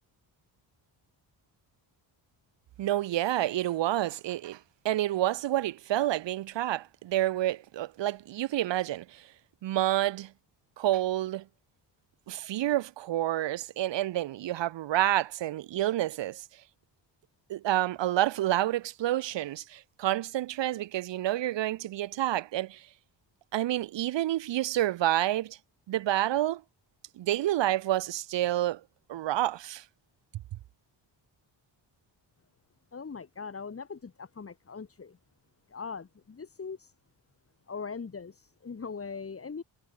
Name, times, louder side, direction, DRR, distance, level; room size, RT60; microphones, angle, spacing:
voice 1, 2.8-4.6 4.8-9.3 9.6-10.3 10.8-11.4 12.3-16.4 17.5-22.9 23.5-25.6 25.9-26.6 27.2-28.8 29.1-29.8, right 14 dB, 70° right, 0.9 m, -29 dB
voice 2, 32.9-35.2 35.7-36.9 37.7-39.6, left 5 dB, 30° left, 5.1 m, -40 dB
cardioid pair, 145°, 46 cm